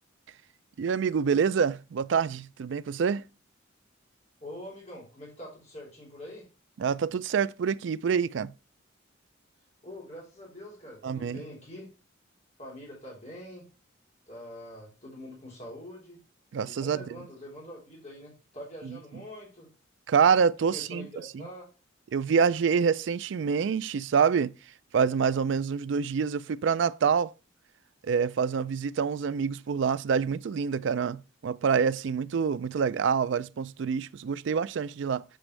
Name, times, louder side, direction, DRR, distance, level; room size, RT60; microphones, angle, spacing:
voice 1, 0.8-3.2 6.8-8.5 11.0-11.4 16.5-17.0 18.8-19.0 20.1-21.1 21.3-21.5 22.1-24.5 24.9-27.3 28.0-35.2, right 6 dB, 65° right, 0.3 m, -26 dB
voice 2, 4.4-6.5 9.8-11.9 12.6-13.7 14.3-16.2 16.6-19.7 20.7-21.7, left 1 dB, 35° left, 3.5 m, -44 dB
7.5 x 6.1 x 3.3 m
head